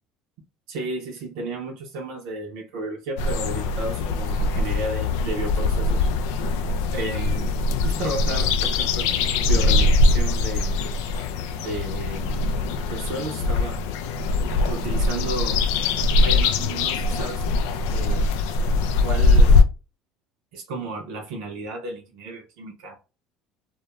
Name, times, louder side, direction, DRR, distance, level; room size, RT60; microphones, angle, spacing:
voice 1, 0.7-6.1 6.9-7.6 7.8-10.8 11.6-12.4 12.9-13.8 14.5-15.6 16.1-17.4 17.9-18.3 19.0-19.6 20.5-23.0, right 2 dB, 75° right, 0.6 m, -33 dB
sound 1, 3.2-19.6, left 3 dB, 75° left, 0.3 m, -22 dB
2.2 x 2.1 x 2.8 m
hypercardioid pair, 75°, 0 cm